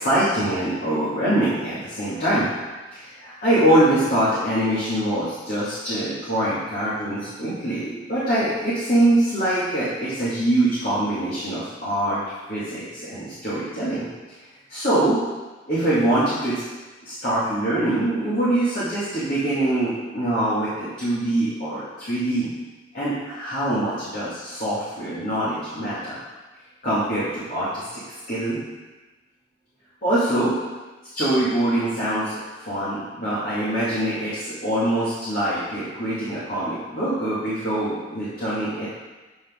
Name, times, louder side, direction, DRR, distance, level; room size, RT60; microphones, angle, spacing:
voice 1, 0.0-2.5 2.9-12.2 12.5-14.0 14.7-15.2 15.7-16.6 17.0-22.5 22.9-26.2 26.8-27.8 28.3-28.6 30.0-30.5 31.1-38.9, right 1 dB, 50° left, -11 dB, 2.3 m, -23 dB
8.6 x 6.0 x 3.7 m, 1.2 s
head